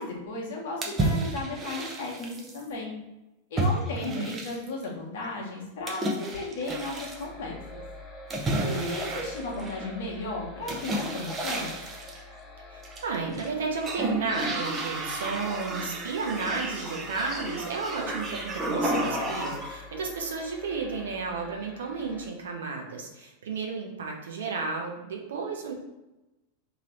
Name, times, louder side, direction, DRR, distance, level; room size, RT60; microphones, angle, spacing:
voice 1, 0.0-2.9 3.5-7.8 8.6-11.8, left 2 dB, 55° left, -1 dB, 1.0 m, -35 dB
sound 1, 0.8-2.6 3.6-4.8 5.9-7.2 8.3-10.0 10.7-12.2 12.8-13.5 13.8-19.8, right 1 dB, 20° right, 0.7 m, -32 dB
voice 2, 3.9-4.3 8.4-9.2 12.7-25.7, right 4 dB, 65° right, 1 dB, 0.7 m, -33 dB
sound 2, 6.7-22.3, left 2 dB, 15° left, 0.9 m, -46 dB
3.2 x 2.8 x 4.1 m, 1.0 s
figure-of-eight pair, 90°, 0 cm